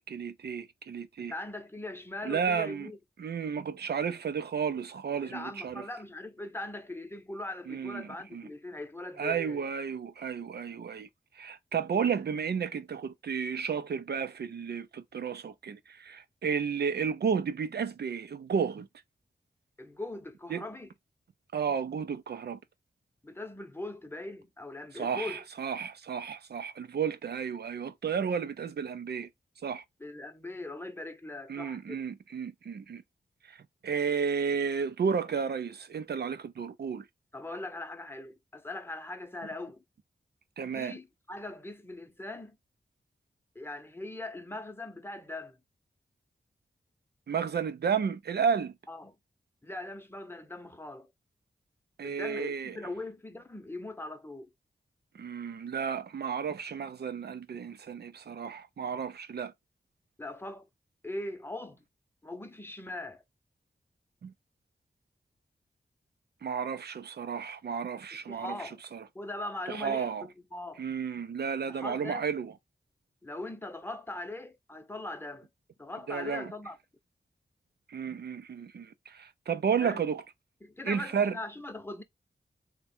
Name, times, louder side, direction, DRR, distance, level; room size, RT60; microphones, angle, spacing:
voice 1, 0.0-1.3 2.2-2.9 3.2-5.8 7.7-8.4 9.2-11.1 11.4-18.9 20.5-20.6 21.5-22.6 24.9-29.3 29.6-29.8 31.5-33.0 33.5-33.6 33.8-37.0 40.6-41.0 47.3-48.7 52.0-52.7 55.1-59.5 64.2-64.3 66.4-68.5 68.9-69.0 69.7-70.3 70.8-72.5 76.1-76.5 77.9-80.2 80.9-81.3, right 6 dB, 70° right, 0.5 m, -32 dB
voice 2, 1.2-3.0 5.2-9.7 19.8-20.9 23.2-25.4 30.0-32.0 37.3-39.8 40.7-42.6 43.5-45.6 48.9-49.2 49.6-51.1 52.0-54.5 60.2-60.7 61.0-61.8 62.2-63.2 68.1-68.8 69.1-70.8 71.7-72.3 73.2-75.5 75.8-76.8 79.8-80.0 80.6-82.0, left 2 dB, 15° left, 0.7 m, -40 dB
3.5 x 2.2 x 4.2 m
wide cardioid pair, 70°, 17 cm